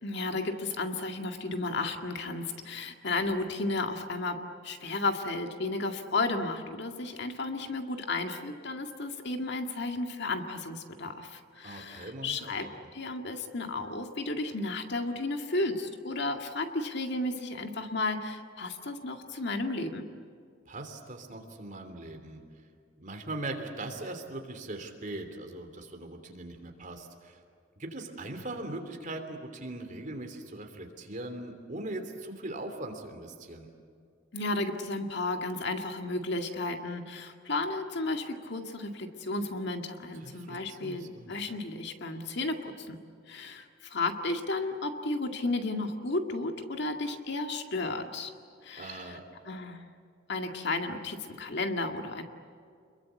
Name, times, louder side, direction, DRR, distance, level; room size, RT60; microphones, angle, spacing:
voice 1, 0.0-4.4 4.6-20.1 34.3-43.0 43.3-48.3 48.6-49.2 49.5-49.8 50.3-52.2, left 2 dB, 60° left, 5 dB, 2.0 m, -33 dB
voice 2, 11.6-12.5 20.7-22.4 23.0-27.4 27.8-33.7 40.2-41.3 48.8-49.2, right 2 dB, 40° right, 5 dB, 3.1 m, -40 dB
28.5 x 22.0 x 8.4 m, 2.3 s
head